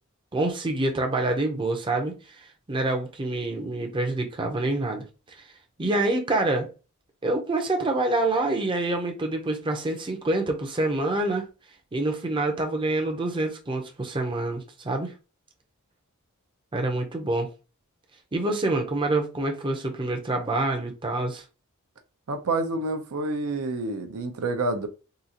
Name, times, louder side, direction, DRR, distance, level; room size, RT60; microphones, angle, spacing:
voice 1, 0.3-5.4 5.8-6.7 7.2-11.4 11.9-15.1 16.7-17.5 18.3-21.4, right 2 dB, 25° right, 0.6 m, -26 dB
voice 2, 22.3-24.9, right 2 dB, 80° right, 0.6 m, -28 dB
3.8 x 2.4 x 2.7 m
head